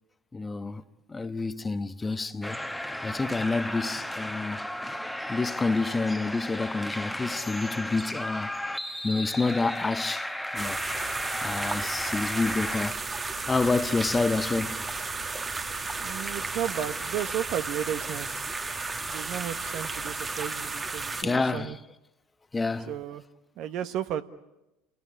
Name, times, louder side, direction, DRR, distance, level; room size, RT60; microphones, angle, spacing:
voice 1, 0.3-0.8 1.1-2.6 3.0-4.7 5.3-8.5 9.0-10.8 11.4-13.0 13.5-14.8 21.2-21.7 22.5-22.9, left 3 dB, 20° left, 1.2 m, -28 dB
sound 1, 2.4-12.9, left 1 dB, 5° left, 1.4 m, -34 dB
sound 2, 10.6-21.2, right 3 dB, 25° right, 1.4 m, -33 dB
voice 2, 16.0-18.5 19.1-21.8 22.9-23.2 23.6-24.2, right 10 dB, 60° right, 1.3 m, -33 dB
29.0 x 18.5 x 8.8 m
hypercardioid pair, 80°, 0 cm